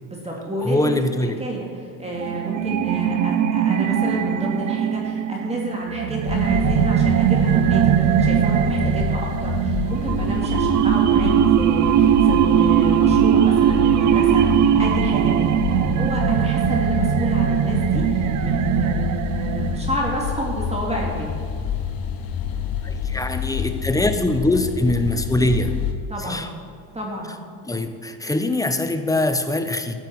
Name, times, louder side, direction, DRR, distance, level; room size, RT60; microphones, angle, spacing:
voice 1, 0.1-1.0 1.4-21.3 26.1-26.5 26.9-27.3, right 1 dB, 15° right, -2 dB, 2.2 m, -30 dB
voice 2, 0.6-1.4 22.8-25.8 26.3-26.5 27.7-29.9, left 1 dB, 10° left, 8 dB, 0.7 m, -22 dB
sound 1, 2.2-20.1, right 10 dB, 45° right, 0.6 m, -20 dB
sound 2, 6.3-25.9, left 7 dB, 55° left, 1.3 m, -28 dB
13.5 x 8.0 x 4.7 m, 2.3 s
supercardioid pair, 100°, 42 cm